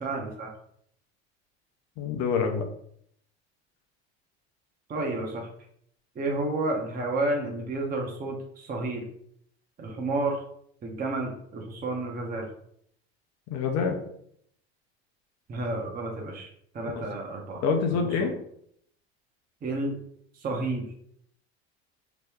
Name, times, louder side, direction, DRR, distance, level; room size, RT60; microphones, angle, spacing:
voice 1, 0.0-0.5 4.9-5.5 6.2-9.0 9.8-10.4 10.8-12.5 15.5-16.5 16.7-17.6 18.2-18.3 19.6-20.0 20.4-20.9, right 2 dB, 30° right, 0 dB, 0.8 m, -30 dB
voice 2, 2.0-2.6 13.5-14.0 16.9-17.0 17.6-18.3, left 5 dB, 50° left, 4 dB, 0.7 m, -26 dB
3.0 x 2.1 x 3.5 m, 0.67 s
hypercardioid pair, 85°, 32 cm